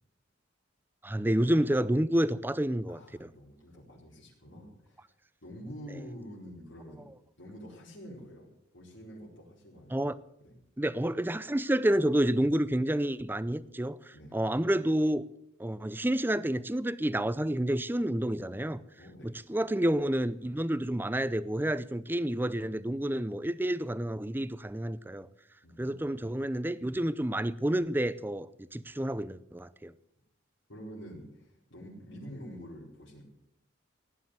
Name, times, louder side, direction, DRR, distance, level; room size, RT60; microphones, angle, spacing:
voice 1, 1.0-3.3 9.9-10.2 10.8-15.2 15.6-18.8 19.2-25.3 25.8-29.9, right 1 dB, 10° right, 0.5 m, -29 dB
voice 2, 2.9-5.1 5.4-7.0 7.4-8.5 8.7-10.1 10.4-10.5 14.1-14.3 19.0-19.3 25.6-26.0 30.7-33.2, equal, 75° left, 4.8 m, -47 dB
17.0 x 9.8 x 7.8 m
head